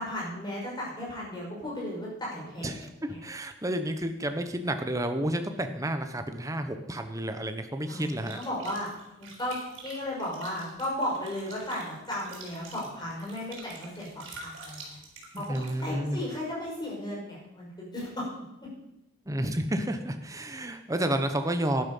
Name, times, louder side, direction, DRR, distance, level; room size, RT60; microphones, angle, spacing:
voice 1, 0.0-3.2 7.9-8.9 9.2-15.0 15.4-15.5 15.8-18.3, left 1 dB, 20° left, -4 dB, 5.8 m, -35 dB
voice 2, 2.6-8.4 15.3-16.2 19.3-21.8, right 1 dB, 15° right, 7 dB, 1.0 m, -31 dB
sound 1, 8.0-15.8, right 3 dB, 75° right, 4.3 m, -47 dB
11.5 x 11.0 x 5.5 m, 0.89 s
head